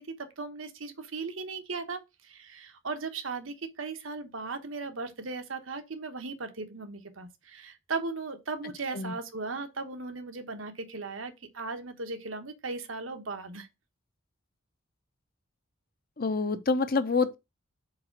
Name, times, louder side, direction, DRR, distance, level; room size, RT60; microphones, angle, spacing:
voice 1, 0.0-13.7, right 3 dB, 85° right, 1.2 m, -37 dB
voice 2, 16.2-17.3, left 4 dB, 45° left, 0.8 m, -27 dB
4.9 x 4.7 x 5.9 m
head